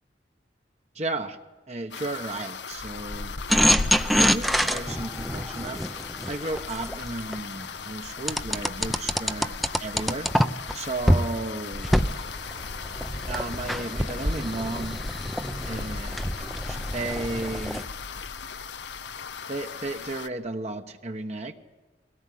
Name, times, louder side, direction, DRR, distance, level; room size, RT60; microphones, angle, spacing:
voice 1, 0.9-1.4 1.7-3.4 4.1-5.8 6.3-9.5 9.8-10.3 10.7-11.9 13.3-15.0 15.7-16.2 16.7-17.8 19.5-21.5, right 2 dB, 40° right, 6 dB, 1.2 m, -33 dB
sound 1, 1.9-20.3, left 4 dB, 85° left, 1.0 m, -37 dB
sound 2, 3.5-7.4 8.3-10.7 11.1-11.3 11.7-17.8, equal, ahead, 0.7 m, -26 dB
22.5 x 17.5 x 9.4 m, 1.2 s
head